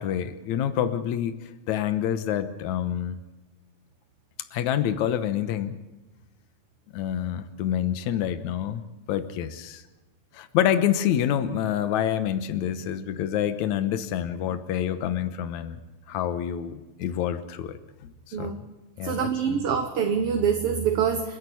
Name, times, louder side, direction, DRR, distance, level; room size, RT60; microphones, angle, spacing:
voice 1, 0.0-1.4 1.7-3.2 4.5-5.7 6.9-8.8 9.1-9.8 10.3-15.8 16.1-17.8 18.3-18.6 19.0-19.7, left 10 dB, 80° left, 12 dB, 2.4 m, -27 dB
voice 2, 19.0-21.4, right 7 dB, 55° right, 6 dB, 2.0 m, -25 dB
29.5 x 11.0 x 8.6 m, 1.1 s
omnidirectional pair, 3.4 m